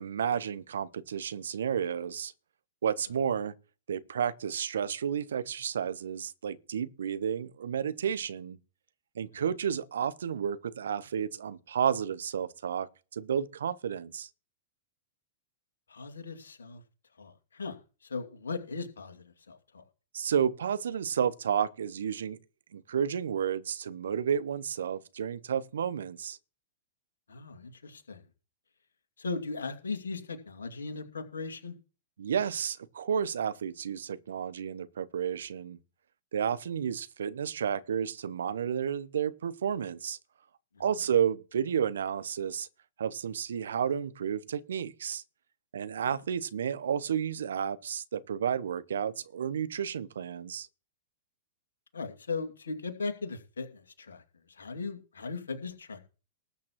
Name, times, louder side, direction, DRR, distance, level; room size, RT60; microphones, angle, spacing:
voice 1, 0.0-2.3 2.8-3.5 3.9-8.6 9.2-14.3 20.1-22.4 22.7-26.4 32.2-35.8 36.3-40.2 40.8-42.7 43.0-45.2 45.7-50.7, right 8 dB, 70° right, 0.8 m, -31 dB
voice 2, 15.9-16.8 17.2-19.8 27.3-28.2 29.2-31.7 40.7-40.8 51.9-54.2 54.5-56.0, left 4 dB, 75° left, 2.3 m, -38 dB
19.5 x 8.6 x 3.0 m
figure-of-eight pair, 100°, 0 cm